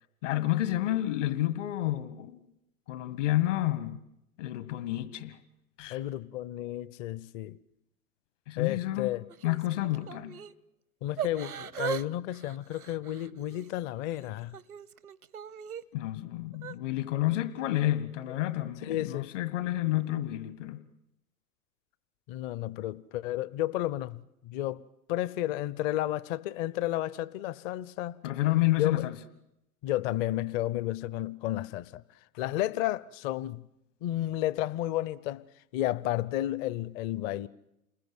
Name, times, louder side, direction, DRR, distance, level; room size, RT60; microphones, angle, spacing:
voice 1, 0.2-2.5 2.9-4.0 4.4-5.4 5.8-6.0 8.5-9.1 9.4-10.4 15.9-20.8 28.2-29.2, left 15 dB, 55° left, 1.8 m, -30 dB
voice 2, 5.9-7.6 8.6-9.2 11.0-14.5 18.8-19.3 22.3-24.8 25.1-28.2 28.8-29.0 29.8-32.0 32.3-33.6 34.0-35.4 35.7-37.5, left 14 dB, 35° left, 0.9 m, -32 dB
Yell / Crying sobbing, 9.3-10.5 11.2-12.1 12.3-13.7 14.2-15.8 16.5-16.8, right 9 dB, 75° right, 0.9 m, -39 dB
29.0 x 21.0 x 8.0 m
figure-of-eight pair, 95°, 44 cm